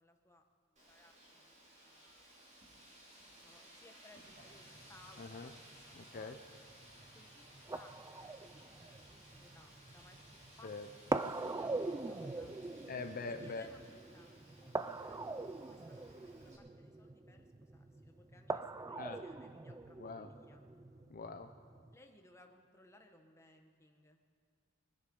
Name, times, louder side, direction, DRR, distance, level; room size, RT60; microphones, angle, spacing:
voice 1, 0.0-2.2 2.9-5.8 6.1-6.4 7.1-7.4 7.7-8.8 9.1-10.2 10.6-12.5 13.2-15.2 15.6-20.6 21.9-24.2, left 2 dB, 15° left, 4 dB, 1.2 m, -63 dB
Wind, 0.8-16.6, right 1 dB, 35° right, 3.3 m, -59 dB
sound 1, 4.4-22.0, right 3 dB, 15° right, 0.4 m, -43 dB
voice 2, 5.2-5.5 5.9-6.4 10.6-10.9 12.9-13.7 19.0-19.2 20.0-20.3 21.1-21.5, left 4 dB, 40° left, 6 dB, 0.6 m, -43 dB
24.0 x 9.9 x 5.4 m, 2.2 s
head